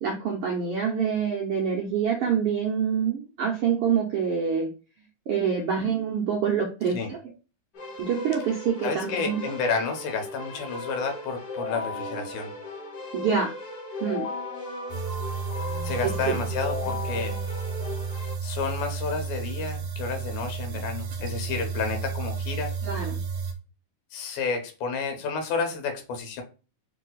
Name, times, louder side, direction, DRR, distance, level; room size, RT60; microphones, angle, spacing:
voice 1, 0.0-4.7 5.3-7.2 8.0-9.4 13.1-13.5 14.0-14.2 16.0-16.4 22.8-23.2, right 7 dB, 90° right, -1 dB, 1.3 m, -26 dB
Keyboard (musical), 7.7-18.3, left 2 dB, 45° left, 1.4 m, -36 dB
voice 2, 8.8-12.5 15.8-17.3 18.4-22.7 24.1-26.4, left 5 dB, 80° left, 5 dB, 2.4 m, -30 dB
sound 1, 14.9-23.5, right 5 dB, 60° right, 2.0 m, -32 dB
4.8 x 2.7 x 3.9 m, 0.33 s
omnidirectional pair, 3.6 m